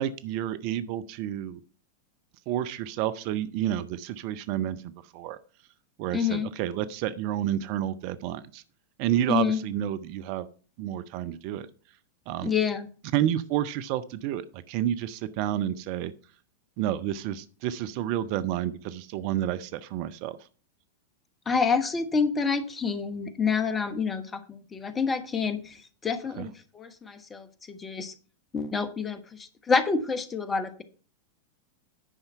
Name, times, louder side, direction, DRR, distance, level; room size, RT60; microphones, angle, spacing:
voice 1, 0.0-1.6 2.5-5.4 6.0-8.6 9.0-10.5 10.8-11.7 12.3-12.5 13.1-16.1 16.8-20.4 26.4-26.5, right 11 dB, 45° right, 14 dB, 0.5 m, -30 dB
voice 2, 6.1-6.5 9.3-9.6 12.4-12.9 21.5-25.8 26.0-28.1 28.5-30.8, left 5 dB, 20° left, 10 dB, 1.2 m, -28 dB
10.0 x 5.6 x 5.7 m, 0.39 s
figure-of-eight pair, 90°, 0 cm